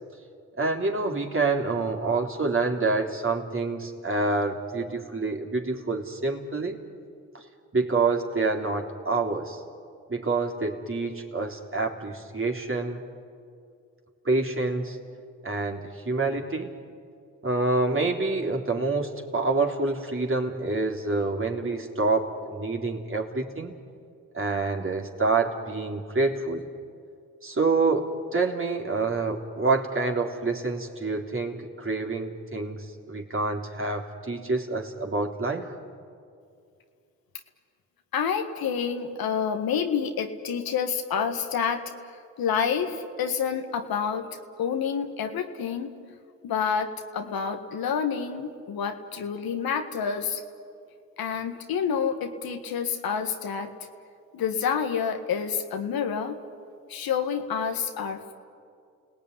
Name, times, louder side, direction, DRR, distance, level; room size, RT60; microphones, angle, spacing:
voice 1, 0.6-6.8 7.3-7.4 7.7-9.6 10.1-13.0 14.3-15.0 15.4-16.7 17.4-23.7 24.3-26.7 27.4-35.8, right 3 dB, 35° right, 1 dB, 3.6 m, -27 dB
voice 2, 38.1-41.8 42.4-44.3 44.6-45.9 46.4-50.4 51.2-53.7 54.3-56.4 56.9-58.3, left 7 dB, 80° left, 6 dB, 1.8 m, -28 dB
29.5 x 18.0 x 9.8 m, 2.4 s
supercardioid pair, 45°, 36 cm